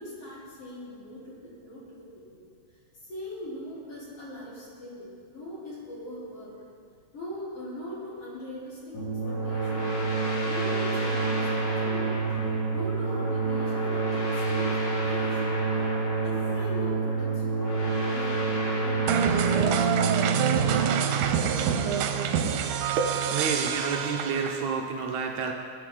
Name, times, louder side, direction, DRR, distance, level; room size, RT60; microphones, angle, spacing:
voice 1, 0.0-2.4 2.9-6.5 7.1-8.9 9.3-10.0 10.5-12.3 12.7-15.4 16.2-17.7 18.1-20.2, equal, 50° left, -8 dB, 4.8 m, -40 dB
sound 1, 8.9-22.3, right 3 dB, 80° left, 3.9 m, -28 dB
sound 2, 19.1-24.7, right 8 dB, 90° right, 2.2 m, -26 dB
voice 2, 23.0-25.5, right 5 dB, 75° right, 2 dB, 2.1 m, -29 dB
20.5 x 9.9 x 3.8 m, 2.3 s
omnidirectional pair, 3.5 m